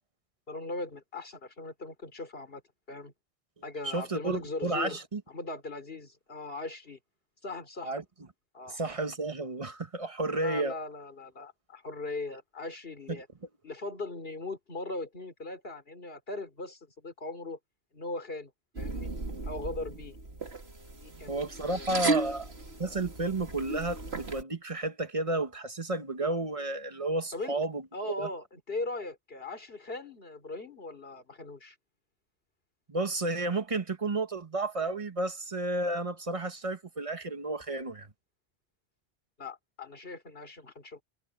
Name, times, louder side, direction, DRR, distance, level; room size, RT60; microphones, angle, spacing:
voice 1, 0.5-2.6 2.9-3.1 3.6-5.0 5.3-7.0 7.4-7.9 8.5-8.8 10.4-13.3 13.6-17.6 17.9-18.5 18.8-19.1 19.5-20.2 21.0-21.4 21.7-22.4 27.3-27.6 27.9-31.8 39.4-41.0, left 2 dB, 65° left, 3.4 m, -39 dB
voice 2, 3.8-5.2 7.8-8.0 8.7-10.7 13.1-13.2 21.3-22.5 22.8-28.3 32.9-38.1, right 2 dB, 35° right, 1.3 m, -32 dB
sound 1, 18.7-24.4, right 2 dB, 80° right, 2.8 m, -35 dB
omnidirectional pair, 1.1 m